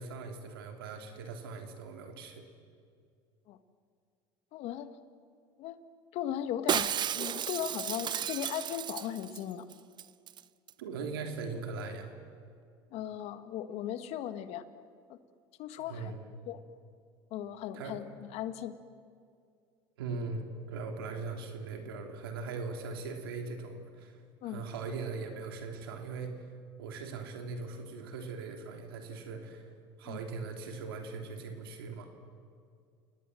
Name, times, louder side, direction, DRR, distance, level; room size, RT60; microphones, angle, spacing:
voice 1, 0.0-2.4 10.8-12.1 15.8-16.2 17.7-18.0 20.0-24.2 24.4-26.4 26.8-29.7 30.0-32.1, right 4 dB, 85° right, 4 dB, 3.2 m, -40 dB
voice 2, 4.5-4.9 5.6-5.8 6.1-9.6 12.9-14.6 15.1-15.2 15.6-16.1 16.5-16.6 17.3-18.7 24.4-24.6 30.0-30.2, left 10 dB, 60° left, 11 dB, 1.5 m, -37 dB
Shatter, 6.7-9.4 9.7-9.8 10.0-10.4 10.7-10.8, right 9 dB, 40° right, 0.7 m, -33 dB
29.5 x 19.0 x 7.7 m, 2.3 s
hypercardioid pair, 85°, 12 cm